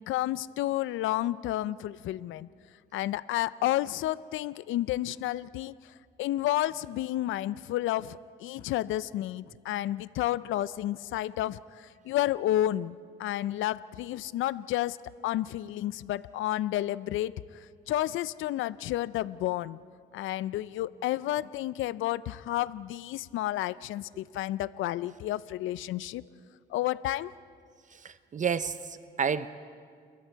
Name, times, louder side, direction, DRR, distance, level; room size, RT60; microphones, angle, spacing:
voice 1, 0.0-2.5 2.9-15.0 15.2-19.8 20.1-26.2 26.7-27.3, left 14 dB, 80° left, 18 dB, 0.5 m, -31 dB
voice 2, 27.9-29.5, right 6 dB, 40° right, 13 dB, 0.7 m, -31 dB
30.0 x 22.0 x 4.6 m, 2.1 s
cardioid pair, 90°, 20 cm